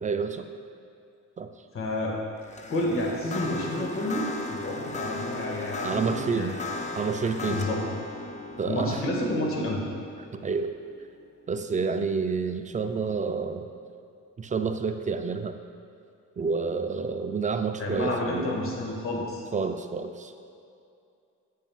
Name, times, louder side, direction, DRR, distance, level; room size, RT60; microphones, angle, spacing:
voice 1, 0.0-0.5 1.4-1.5 5.8-6.6 7.0-7.6 8.6-9.0 10.4-10.7 11.5-13.7 14.4-15.6 16.4-18.6 19.5-20.4, right 5 dB, 25° right, 7 dB, 0.4 m, -29 dB
voice 2, 1.7-2.1 2.7-6.5 7.5-7.8 8.6-9.8 17.8-19.4, left 1 dB, 45° left, -2 dB, 1.8 m, -29 dB
sound 1, 2.4-11.7, left 2 dB, 25° left, 0.5 m, -37 dB
9.1 x 8.2 x 2.4 m, 2.5 s
cardioid pair, 90°, 30 cm